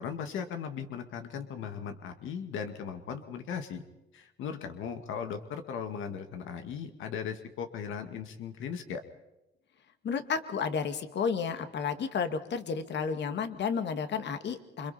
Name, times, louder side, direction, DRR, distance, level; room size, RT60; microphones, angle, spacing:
voice 1, 0.0-3.8 4.1-9.0, left 7 dB, 85° left, 6 dB, 2.0 m, -38 dB
voice 2, 10.0-14.9, left 6 dB, 60° left, 8 dB, 2.2 m, -32 dB
28.0 x 26.0 x 4.4 m, 0.92 s
cardioid pair, 90°, 20 cm